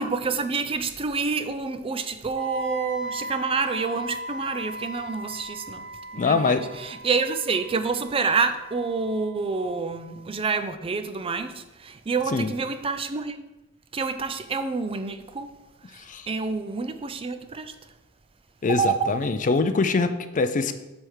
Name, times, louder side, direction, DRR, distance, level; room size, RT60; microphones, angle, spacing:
voice 1, 0.0-13.4 13.9-15.5 15.8-17.7 18.7-19.2, right 4 dB, 25° right, 0.4 m, -28 dB
Wind instrument woodwind instrument, 2.4-10.3, right 1 dB, 90° right, 1.6 m, -38 dB
voice 2, 6.2-6.7 12.3-12.5 15.9-16.3 18.6-20.7, left 4 dB, 35° left, 0.4 m, -23 dB
7.6 x 3.5 x 6.3 m
head